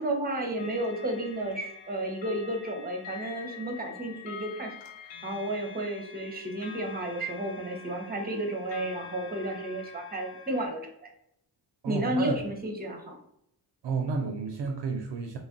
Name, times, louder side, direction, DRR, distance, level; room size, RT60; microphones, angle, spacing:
voice 1, 0.0-4.8 5.0-11.1 11.9-13.1, right 1 dB, 20° right, 3 dB, 0.8 m, -32 dB
sound 1, 0.6-10.7, left 6 dB, 65° left, 0.6 m, -46 dB
voice 2, 11.8-12.3 13.8-15.4, right 4 dB, 60° right, 3 dB, 0.5 m, -31 dB
2.4 x 2.0 x 3.7 m, 0.74 s
cardioid pair, 45°, 48 cm